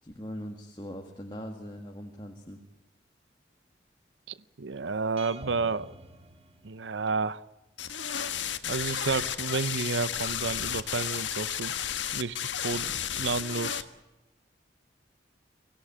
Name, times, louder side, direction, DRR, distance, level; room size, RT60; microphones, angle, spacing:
voice 1, 0.0-2.6, equal, 25° left, 3 dB, 1.9 m, -41 dB
voice 2, 4.3-5.9 6.6-7.4 8.7-11.7 12.1-13.8, right 4 dB, 85° right, 17 dB, 0.7 m, -31 dB
sound 1, 5.2-7.2, right 2 dB, 35° right, 1.7 m, -46 dB
sound 2, 7.8-13.8, left 9 dB, 85° left, 1.5 m, -32 dB
24.0 x 17.0 x 8.8 m, 1.1 s
head